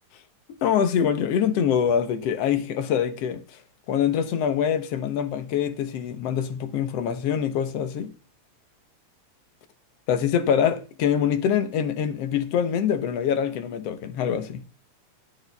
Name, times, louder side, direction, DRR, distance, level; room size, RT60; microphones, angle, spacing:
voice 1, 0.6-3.4 3.9-8.1 10.1-14.6, left 8 dB, 65° left, 1.9 m, -24 dB
12.0 x 9.1 x 3.5 m
omnidirectional pair, 3.3 m